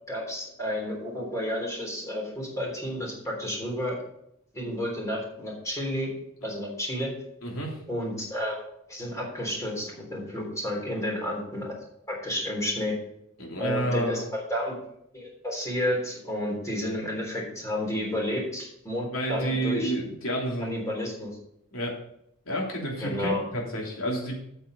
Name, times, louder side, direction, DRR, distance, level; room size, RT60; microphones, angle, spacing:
voice 1, 0.1-4.0 4.5-6.1 6.4-7.1 7.9-8.6 8.9-11.8 12.1-13.0 13.6-14.7 15.1-19.9 20.6-21.4 23.0-23.4, left 1 dB, 15° left, -2 dB, 3.5 m, -31 dB
voice 2, 7.4-7.8 13.4-14.2 19.1-20.8 21.7-21.9 22.5-24.3, right 1 dB, 80° left, -1 dB, 3.0 m, -29 dB
8.4 x 7.2 x 5.1 m, 0.75 s
head